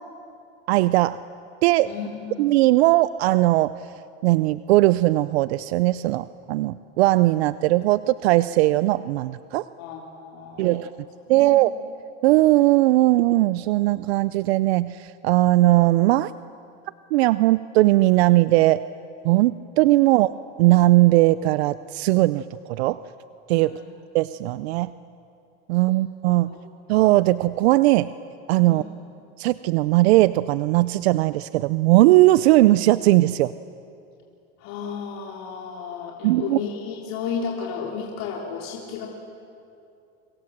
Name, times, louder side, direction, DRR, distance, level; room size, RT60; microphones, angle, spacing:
voice 1, 0.7-1.2 1.6-1.9 2.4-3.7 4.2-9.6 10.6-10.9 11.3-11.7 12.2-16.3 17.1-18.8 19.2-20.3 20.6-22.4 22.7-23.0 23.5-23.7 24.1-24.9 25.7-26.5 26.9-28.1 28.5-28.8 29.4-33.5 36.2-36.6, right 18 dB, 85° right, 15 dB, 0.6 m, -19 dB
voice 2, 1.8-2.4 9.8-11.0 11.3-11.7 23.6-23.9 25.9-26.0 26.4-26.7 28.6-28.9 34.6-39.1, left 6 dB, 60° left, -2 dB, 3.7 m, -33 dB
29.5 x 25.5 x 7.4 m, 2.6 s
supercardioid pair, 125°, 31 cm